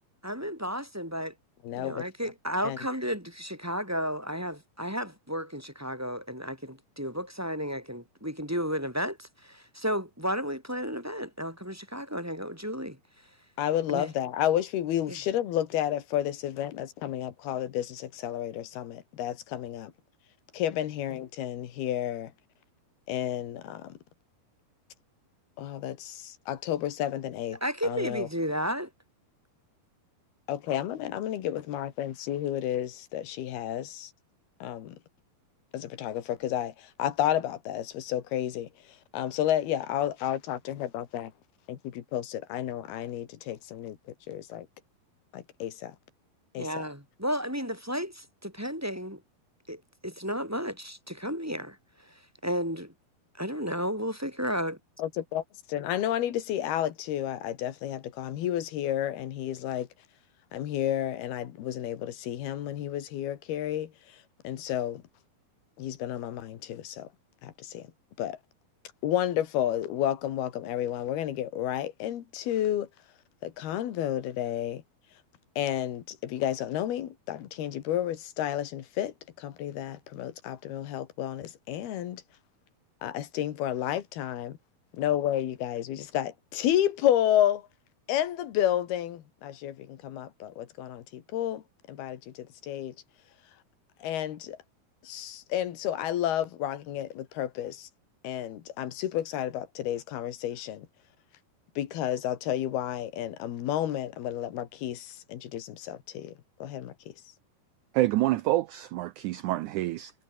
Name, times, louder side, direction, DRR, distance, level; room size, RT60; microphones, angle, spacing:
voice 1, 0.2-1.3 1.8-13.0 13.9-14.1 15.1-15.2 27.6-28.9 46.6-49.2 49.7-52.1 52.4-52.9 53.4-54.8, equal, 5° right, 5.4 m, -33 dB
voice 2, 1.6-2.1 2.6-2.8 13.6-19.9 20.5-22.3 23.1-24.0 25.6-28.3 30.5-34.1 34.6-35.0 35.7-38.7 39.1-41.3 41.7-44.0 44.3-44.7 45.3-46.0 46.6-46.7 55.0-55.4 55.7-59.9 60.5-65.0 65.8-67.1 67.4-67.9 68.2-68.4 69.0-72.9 73.4-74.8 75.6-82.2 83.0-84.6 84.9-87.7 88.1-91.6 91.9-93.0 94.0-94.6 95.0-97.9 98.2-100.9 101.8-106.3 106.6-107.2, left 11 dB, 90° left, 3.7 m, -31 dB
voice 3, 107.9-110.1, right 16 dB, 85° right, 1.7 m, -27 dB
omnidirectional pair, 4.3 m